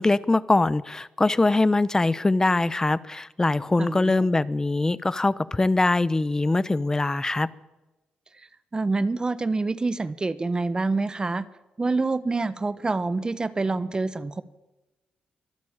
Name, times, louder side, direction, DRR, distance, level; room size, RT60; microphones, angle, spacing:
voice 1, 0.0-7.5, left 2 dB, 20° left, 18 dB, 0.9 m, -22 dB
voice 2, 3.8-4.3 8.7-11.5 11.8-14.4, right 3 dB, 30° right, 15 dB, 1.2 m, -26 dB
23.5 x 12.5 x 8.9 m, 1.1 s
cardioid pair, 75°, 3 cm